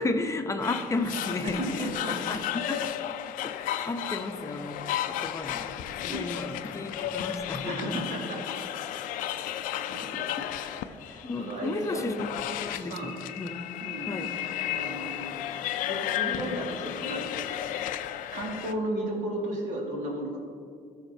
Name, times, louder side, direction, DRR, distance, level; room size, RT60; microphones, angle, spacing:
voice 1, 0.0-2.8 3.4-5.7 6.0-8.0 10.0-10.5 11.2-12.3 12.6-13.5 14.1-14.3 16.3-16.5, left 2 dB, 20° left, 5 dB, 0.7 m, -33 dB
sound 1, 0.6-18.7, left 11 dB, 75° left, 0.4 m, -34 dB
voice 2, 1.4-2.2 6.1-6.4 7.6-8.6 9.9-12.0 12.9-13.1 13.8-14.5 14.7-15.3 15.8-17.6 18.3-20.4, right 1 dB, 65° right, -2 dB, 2.0 m, -35 dB
14.0 x 6.5 x 2.7 m, 2.4 s
supercardioid pair, 80°, 14 cm